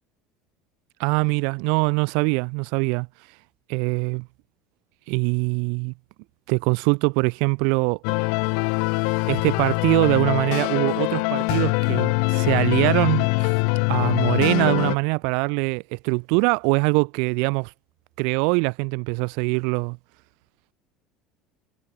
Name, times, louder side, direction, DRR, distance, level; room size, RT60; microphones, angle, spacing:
voice 1, 1.0-3.1 3.7-4.3 5.1-5.9 6.5-8.0 9.3-13.5 13.9-17.7 18.2-20.0, right 38 dB, 75° right, 4.8 m, -23 dB
sound 1, 8.0-15.0, left 40 dB or more, 75° left, 3.7 m, -23 dB
supercardioid pair, 130°, 0 cm